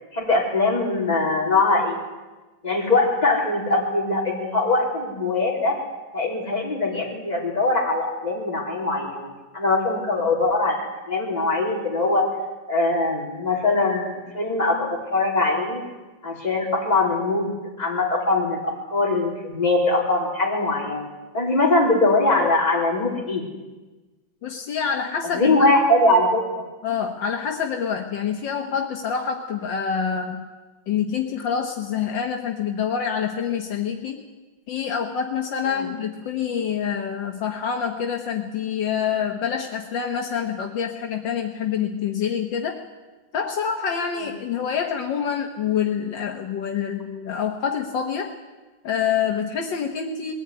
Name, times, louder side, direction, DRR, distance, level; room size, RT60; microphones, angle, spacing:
voice 1, 0.1-2.0 2.6-5.8 6.1-12.3 12.7-15.8 16.2-21.1 21.3-23.5 25.3-26.6 35.7-35.9 44.2-44.3, left 2 dB, 20° left, -2 dB, 3.8 m, -22 dB
voice 2, 24.4-25.7 26.8-30.4 30.9-34.2 34.7-42.8 43.3-48.3 48.8-50.3, left 7 dB, 75° left, 3 dB, 1.9 m, -26 dB
21.0 x 15.0 x 9.6 m, 1.2 s
omnidirectional pair, 2.0 m